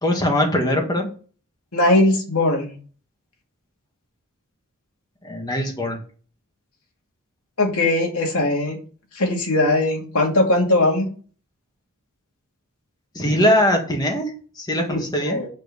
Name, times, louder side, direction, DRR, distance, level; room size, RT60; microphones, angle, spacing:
voice 1, 0.0-1.1 5.2-6.0 13.1-15.4, left 1 dB, 20° left, 1 dB, 1.7 m, -21 dB
voice 2, 1.7-2.7 7.6-8.8 9.2-11.1 14.9-15.0 15.3-15.5, left 2 dB, 75° left, 0 dB, 2.5 m, -19 dB
8.5 x 4.6 x 6.7 m, 0.40 s
head